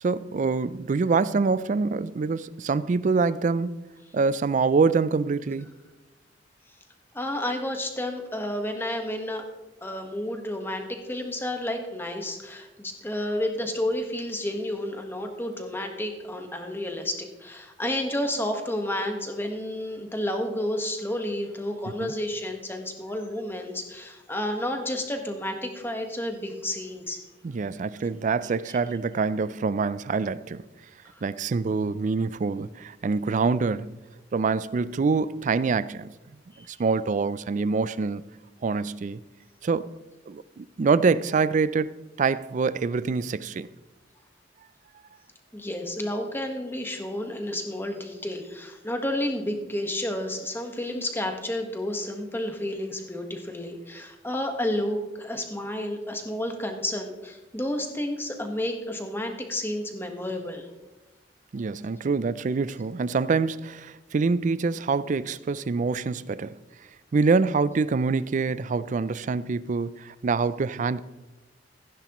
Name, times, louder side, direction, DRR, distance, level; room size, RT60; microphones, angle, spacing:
voice 1, 0.0-3.9 4.1-5.7 22.0-22.1 27.4-30.6 31.2-33.9 34.3-36.1 36.6-38.2 38.6-39.2 39.6-39.9 40.3-43.7 61.5-66.6 67.1-71.0, right 4 dB, 45° right, 0.4 m, -25 dB
voice 2, 7.1-9.4 9.8-27.2 31.1-31.2 36.5-36.8 45.5-60.7, left 1 dB, 15° left, 1.3 m, -31 dB
15.0 x 10.0 x 3.0 m
head